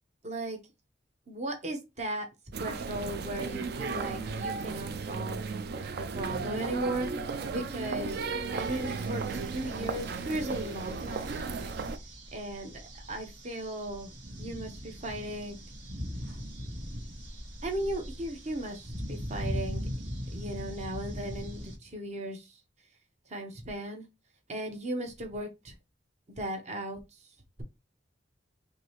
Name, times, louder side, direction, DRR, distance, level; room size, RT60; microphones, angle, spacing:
voice 1, 0.2-0.6 1.3-2.3 2.6-5.4 5.7-7.1 7.5-11.8 12.3-15.6 17.6-19.8 20.3-22.6 23.3-24.1 24.5-25.7 26.3-27.0, right 1 dB, 40° right, 0.9 m, -37 dB
sound 1, 2.5-12.0, right 4 dB, 60° right, 0.4 m, -35 dB
sound 2, 8.6-21.8, equal, 75° right, 1.6 m, -40 dB
4.7 x 2.7 x 3.0 m
head